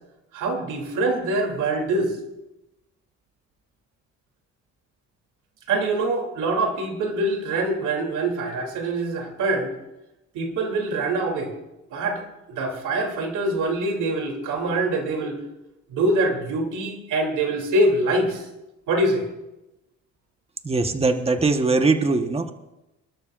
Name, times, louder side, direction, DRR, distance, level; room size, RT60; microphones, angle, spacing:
voice 1, 0.3-2.1 5.7-9.7 10.3-11.5 11.9-12.2 12.5-15.4 15.9-18.4 18.9-19.2, right 2 dB, 85° right, 2 dB, 3.0 m, -24 dB
voice 2, 20.6-22.5, right 3 dB, 20° right, 6 dB, 1.2 m, -21 dB
27.0 x 13.0 x 2.5 m, 0.97 s
cardioid pair, 90°, 30 cm